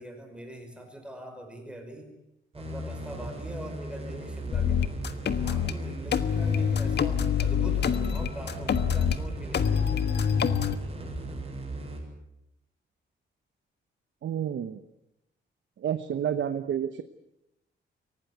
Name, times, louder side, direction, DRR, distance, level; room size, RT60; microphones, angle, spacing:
voice 1, 0.0-2.1 2.5-5.0 5.4-10.1, right 1 dB, 5° right, 4 dB, 5.4 m, -43 dB
sound 1, 2.5-12.0, right 1 dB, 30° right, 7.6 m, -37 dB
sound 2, 4.5-5.7 6.1-9.2 9.5-10.8, left 8 dB, 55° left, 1.4 m, -25 dB
voice 2, 14.2-14.8 15.8-17.0, right 9 dB, 70° right, 10 dB, 1.1 m, -29 dB
24.0 x 18.0 x 9.4 m, 0.87 s
wide cardioid pair, 140°, 20 cm